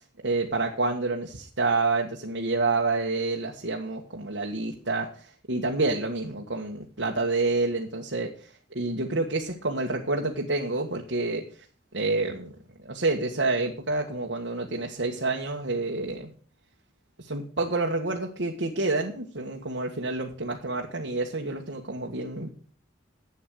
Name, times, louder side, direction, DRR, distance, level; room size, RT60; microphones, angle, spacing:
voice 1, 0.2-8.3 8.7-11.4 11.9-12.5 12.8-16.3 17.2-22.5, right 3 dB, 75° right, 0 dB, 1.7 m, -28 dB
12.0 x 8.5 x 6.4 m, 0.42 s
head